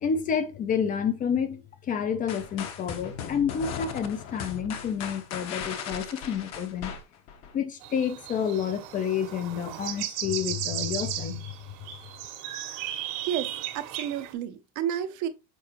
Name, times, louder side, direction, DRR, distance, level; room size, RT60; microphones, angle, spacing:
voice 1, 0.0-6.9 7.5-11.5, left 7 dB, 20° left, 0.4 m, -29 dB
sound 1, 2.3-7.5, left 7 dB, 40° left, 0.9 m, -37 dB
sound 2, 7.8-14.3, right 12 dB, 70° right, 1.7 m, -36 dB
voice 2, 13.2-15.3, right 10 dB, 45° right, 0.7 m, -31 dB
6.8 x 4.7 x 2.9 m
cardioid pair, 170°, 41 cm